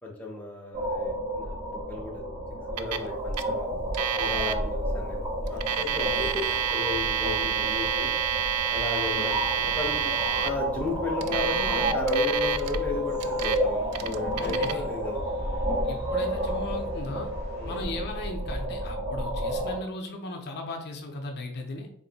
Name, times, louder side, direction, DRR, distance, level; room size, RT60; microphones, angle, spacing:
voice 1, 0.0-2.2 2.7-3.7 4.2-8.1 8.7-10.1 10.4-15.6 17.5-17.8, left 3 dB, 5° left, -2 dB, 0.7 m, -35 dB
sound 1, 0.7-19.8, equal, 40° right, 1.4 m, -31 dB
Alarm, 2.8-3.1 3.3-3.4 3.9-4.5 5.5-10.5 11.2-12.8 13.2-13.6 13.9-14.7, right 9 dB, 85° right, 0.4 m, -28 dB
sound 2, 5.4-17.9, equal, 55° right, 1.6 m, -45 dB
voice 2, 14.3-14.8 15.8-17.3 17.7-21.9, left 2 dB, 50° left, 3 dB, 0.5 m, -37 dB
3.6 x 2.6 x 3.9 m, 0.70 s
head